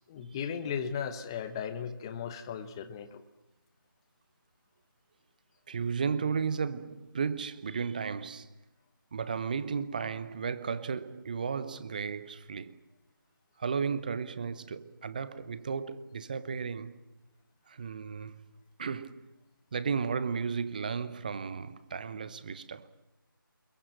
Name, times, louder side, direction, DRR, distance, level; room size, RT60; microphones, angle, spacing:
voice 1, 0.1-3.2, left 7 dB, 10° left, 1.0 m, -36 dB
voice 2, 5.7-8.6 9.1-12.8 13.6-17.0 17.7-18.4 18.8-19.3 19.7-22.9, right 6 dB, 20° right, 0.9 m, -34 dB
29.0 x 22.0 x 7.7 m
figure-of-eight pair, 160°, 12 cm